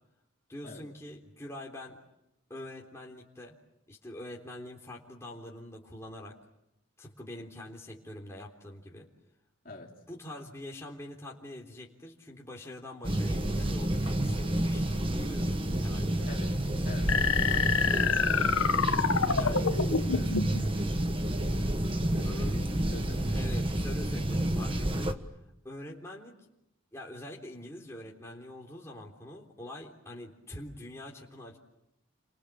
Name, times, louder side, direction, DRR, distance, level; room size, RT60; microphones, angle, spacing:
voice 1, 0.5-2.0 2.5-3.5 3.9-6.3 7.0-9.1 9.7-9.8 10.1-16.4 18.7-19.7 22.2-22.5 23.3-25.2 25.6-26.3 26.9-31.6, left 1 dB, 15° left, -2 dB, 3.5 m, -44 dB
sound 1, 13.0-25.1, right 1 dB, 25° right, 1.4 m, -30 dB
voice 2, 16.8-17.3 19.8-20.9 21.5-23.6, left 1 dB, 40° left, -1 dB, 3.4 m, -47 dB
sound 2, 17.1-20.6, left 5 dB, 85° left, 1.3 m, -27 dB
29.5 x 24.5 x 7.5 m, 0.85 s
head